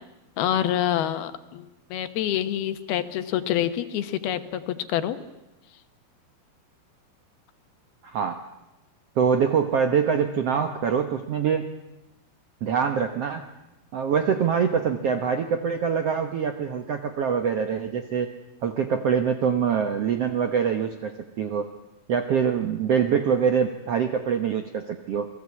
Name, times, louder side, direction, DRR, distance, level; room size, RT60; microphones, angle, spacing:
voice 1, 0.4-1.7 1.9-5.2, left 11 dB, 75° left, 11 dB, 3.0 m, -26 dB
voice 2, 8.1-8.4 9.2-11.7 12.6-13.4 13.9-18.3 18.6-21.1 21.4-21.7 22.1-25.3, right 7 dB, 80° right, 7 dB, 1.3 m, -24 dB
28.0 x 20.0 x 8.5 m, 0.97 s
omnidirectional pair, 4.5 m